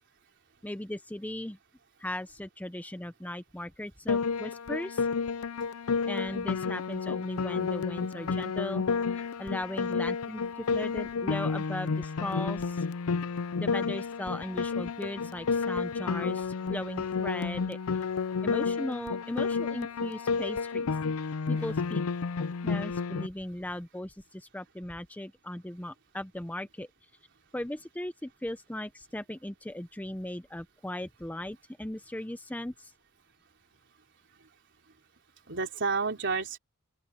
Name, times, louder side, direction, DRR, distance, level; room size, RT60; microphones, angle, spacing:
voice 1, 0.6-1.6 2.0-5.1 6.1-10.4 10.7-12.8 13.6-17.8 18.4-20.9 21.5-22.0 22.6-26.9 27.5-32.9, left 1 dB, 5° left, 0.6 m, -38 dB
Piano, 4.1-23.3, left 5 dB, 80° left, 0.5 m, -31 dB
voice 2, 35.5-36.6, right 4 dB, 55° right, 3.9 m, -31 dB
open air
head